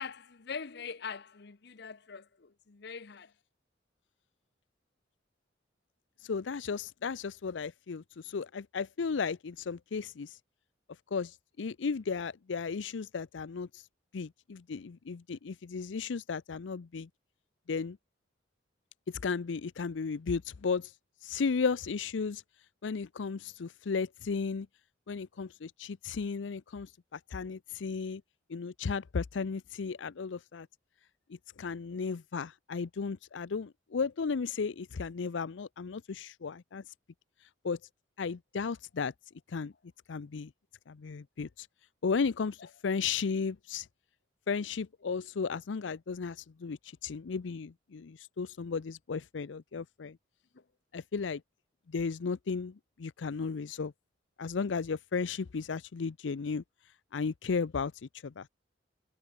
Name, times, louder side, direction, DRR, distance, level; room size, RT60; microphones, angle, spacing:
voice 1, 0.0-3.3 42.6-42.7 50.5-50.7, left 6 dB, 65° left, 0.9 m, -43 dB
voice 2, 6.2-10.4 11.1-13.9 14.1-17.1 17.7-18.0 19.1-20.9 21.2-22.4 22.8-24.7 25.1-28.2 28.5-30.7 31.3-36.9 37.4-37.8 38.2-39.1 39.5-39.7 40.1-40.5 40.9-41.7 42.0-43.9 44.5-50.2 50.9-51.4 51.9-53.9 54.4-56.6 57.1-58.5, left 5 dB, 90° left, 0.5 m, -35 dB
head